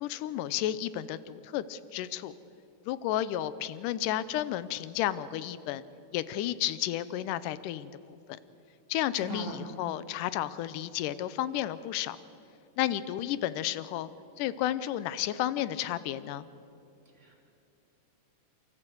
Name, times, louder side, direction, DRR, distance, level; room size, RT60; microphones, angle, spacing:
voice 1, 0.0-2.3 2.9-5.8 6.1-7.9 8.9-12.2 12.8-14.1 14.4-16.5, left 12 dB, 80° left, 15 dB, 2.2 m, -32 dB
voice 2, 9.1-9.6 17.2-17.4, right 3 dB, 20° right, -2 dB, 3.2 m, -39 dB
29.0 x 13.5 x 7.9 m, 2.7 s
omnidirectional pair, 3.8 m